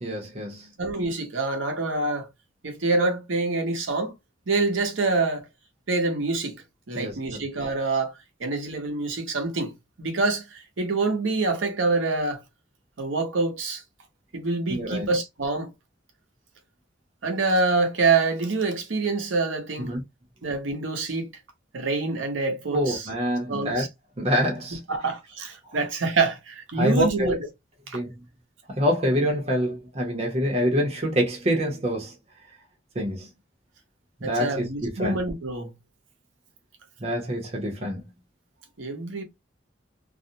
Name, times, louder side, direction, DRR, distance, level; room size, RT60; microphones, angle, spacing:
voice 1, 0.0-0.7 7.0-7.4 14.7-15.1 19.8-20.0 22.7-23.8 24.2-24.8 26.8-27.3 27.9-28.2 28.7-32.1 33.0-33.3 34.2-35.2 37.0-38.0, equal, 35° right, 0.7 m, -26 dB
voice 2, 0.8-2.3 2.6-4.1 4.5-5.5 5.9-8.1 8.4-12.4 13.0-13.8 14.3-15.7 17.2-19.9 20.4-21.3 21.7-23.1 23.5-23.9 24.9-27.4 27.9-28.0 34.2-35.7 38.8-39.2, right 3 dB, 85° right, 0.8 m, -26 dB
2.4 x 2.0 x 2.6 m
head